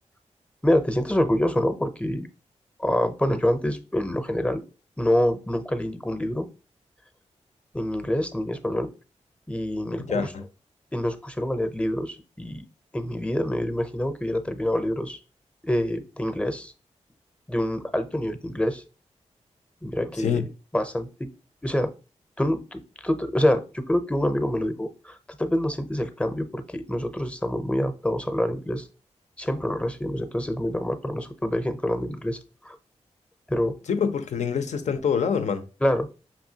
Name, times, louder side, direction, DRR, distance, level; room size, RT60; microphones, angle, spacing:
voice 1, 0.6-2.3 2.8-4.6 5.0-6.5 7.7-8.9 9.5-10.3 10.9-12.6 12.9-15.2 15.6-16.7 17.5-18.8 19.8-20.5 20.7-21.3 21.6-21.9 22.4-28.9 29.4-32.4 32.6-32.8 33.5-33.7 35.8-36.1, left 1 dB, 10° left, 0.6 m, -26 dB
voice 2, 10.1-10.4 20.2-20.5 33.9-35.6, left 6 dB, 75° left, 0.5 m, -25 dB
5.5 x 2.6 x 2.8 m
cardioid pair, 60°, 12 cm